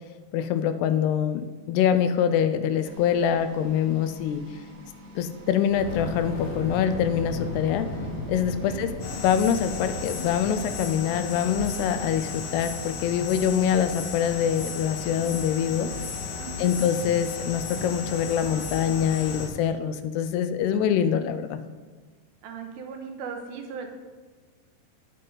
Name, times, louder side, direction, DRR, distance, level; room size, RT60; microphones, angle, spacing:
voice 1, 0.3-4.4 5.2-7.9 8.3-8.9 9.2-15.9 16.6-21.6, left 8 dB, 85° left, 10 dB, 2.7 m, -24 dB
sound 1, 2.8-12.7, left 1 dB, 50° right, 2.1 m, -47 dB
Fire, 5.6-10.9, left 1 dB, 35° left, 2.2 m, -35 dB
sound 2, 9.0-19.5, left 4 dB, 60° left, 3.5 m, -34 dB
voice 2, 16.4-16.7 22.4-23.9, right 6 dB, 75° right, 4 dB, 2.6 m, -37 dB
18.0 x 6.6 x 3.9 m, 1.4 s
omnidirectional pair, 4.7 m